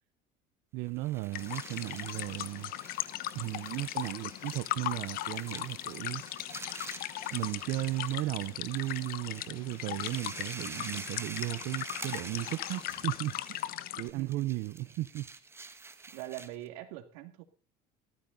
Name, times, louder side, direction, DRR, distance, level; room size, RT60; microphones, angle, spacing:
voice 1, 0.7-2.7 3.3-6.2 7.3-15.3, right 18 dB, 65° right, 0.8 m, -35 dB
sound 1, 0.9-16.7, right 3 dB, 15° right, 1.3 m, -48 dB
sound 2, 1.3-14.1, left 14 dB, 55° left, 0.9 m, -38 dB
voice 2, 16.1-17.4, right 15 dB, 85° right, 2.3 m, -43 dB
14.5 x 14.0 x 4.0 m
cardioid pair, 130°, 18 cm